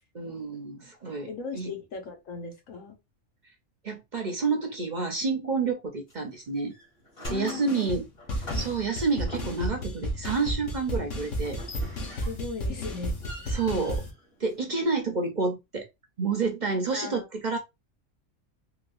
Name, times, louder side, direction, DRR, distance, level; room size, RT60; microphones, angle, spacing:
voice 1, 0.1-1.7 3.8-6.7 7.3-8.1 8.5-11.6 13.5-14.0 14.4-15.9 16.2-17.6, right 4 dB, 45° right, 0.7 m, -29 dB
voice 2, 1.3-3.0 7.3-7.9 12.2-13.6 16.9-17.2, left 5 dB, 85° left, 1.5 m, -38 dB
sound 1, 6.1-6.4 6.7-9.8 11.4-12.6 12.9-14.9, left 1 dB, 50° left, 1.7 m, -44 dB
sound 2, 7.2-7.4 7.7-8.0 8.3-14.1, equal, 70° left, 1.4 m, -33 dB
3.8 x 2.4 x 2.5 m
omnidirectional pair, 1.3 m